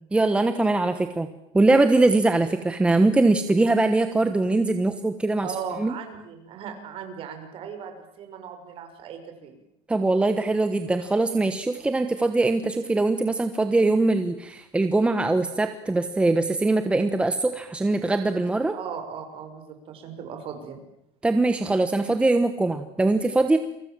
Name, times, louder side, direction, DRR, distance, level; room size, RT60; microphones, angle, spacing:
voice 1, 0.1-1.3 1.5-5.5 5.8-5.9 9.9-18.7 21.2-23.6, right 2 dB, 10° right, 8 dB, 1.2 m, -22 dB
voice 2, 5.4-9.5 18.7-20.8, right 7 dB, 40° right, 6 dB, 5.9 m, -37 dB
29.5 x 24.0 x 7.5 m, 0.83 s
cardioid pair, 160°, 14 cm